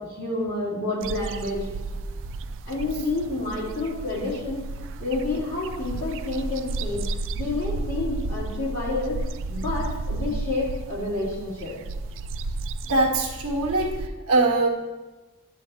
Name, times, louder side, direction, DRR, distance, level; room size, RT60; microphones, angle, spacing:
voice 1, 0.0-1.7 2.7-4.6 5.0-9.2 9.5-11.8, left 2 dB, 60° left, -7 dB, 3.1 m, -29 dB
Rural farmland ambience, 1.0-14.1, right 2 dB, 60° right, 0.4 m, -33 dB
voice 2, 12.8-14.7, right 2 dB, 85° right, -1 dB, 1.3 m, -22 dB
10.0 x 7.7 x 2.9 m, 1.2 s
head